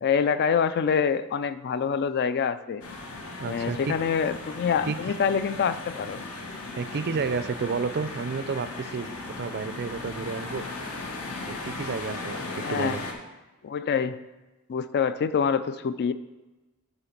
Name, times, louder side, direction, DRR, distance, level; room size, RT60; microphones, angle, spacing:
voice 1, 0.0-2.8 3.4-6.2 12.6-13.0 13.6-14.2 14.7-16.1, left 6 dB, 50° left, 13 dB, 0.3 m, -26 dB
Japan Tokyo Shinjuku Pachinko Noise Doors Opening, 2.8-13.1, left 3 dB, 70° left, 1.1 m, -37 dB
voice 2, 3.3-3.9 4.9-5.0 6.8-9.1 9.4-10.7 11.5-13.0, right 5 dB, 50° right, 12 dB, 0.4 m, -31 dB
8.9 x 4.0 x 5.8 m, 1.1 s
head